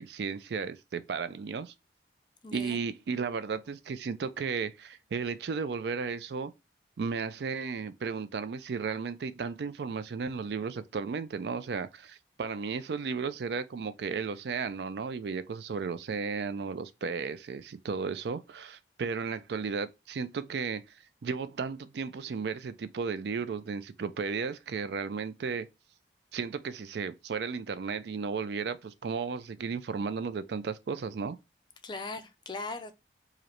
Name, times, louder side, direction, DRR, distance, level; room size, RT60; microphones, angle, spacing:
voice 1, 0.0-1.7 2.5-6.5 7.0-20.8 21.2-25.7 26.3-31.4, right 5 dB, 65° right, 0.4 m, -34 dB
voice 2, 2.4-2.8 31.8-33.0, left 3 dB, 25° left, 0.4 m, -39 dB
4.8 x 2.1 x 2.9 m
head